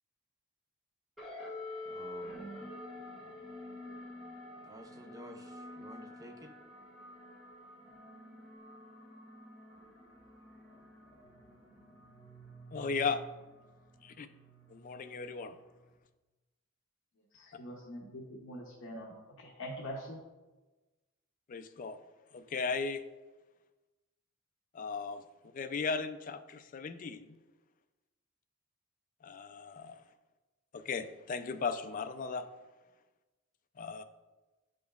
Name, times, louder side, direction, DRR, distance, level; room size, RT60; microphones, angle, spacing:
sound 1, 1.2-15.9, left 1 dB, ahead, 1.7 m, -49 dB
voice 1, 1.8-2.5 4.6-6.5, equal, 15° right, 5 dB, 0.5 m, -52 dB
voice 2, 12.7-13.2 14.0-14.3 14.7-15.6 21.5-22.0 22.3-23.0 24.7-25.2 25.5-27.4 29.2-30.0 30.7-32.5 33.8-34.0, left 5 dB, 40° left, 9 dB, 0.3 m, -36 dB
voice 3, 17.3-20.2, equal, 65° left, -2 dB, 0.8 m, -44 dB
8.9 x 5.2 x 2.3 m, 1.2 s
head